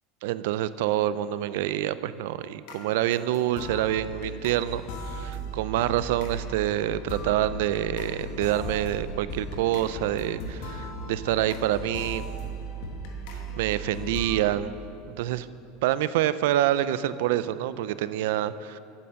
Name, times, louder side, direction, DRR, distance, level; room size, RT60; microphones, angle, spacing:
voice 1, 0.2-12.2 13.6-14.7 15.1-15.5 15.8-18.8, right 12 dB, 65° right, 15 dB, 0.3 m, -27 dB
sound 1, 2.7-14.4, right 1 dB, 55° left, 1.3 m, -37 dB
8.5 x 7.0 x 7.5 m, 2.5 s
supercardioid pair, 175°, 0 cm